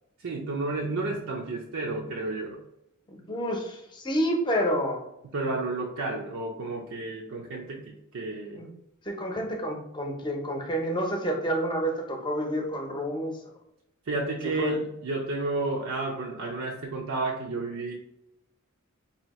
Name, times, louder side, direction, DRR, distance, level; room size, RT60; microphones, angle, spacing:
voice 1, 0.2-2.6 5.2-8.6 14.1-17.9, right 3 dB, 70° right, -2 dB, 0.5 m, -31 dB
voice 2, 3.1-5.0 8.6-8.7 9.1-13.3 14.6-14.8, equal, 20° left, 1 dB, 0.7 m, -29 dB
2.8 x 2.7 x 4.1 m, 0.83 s
head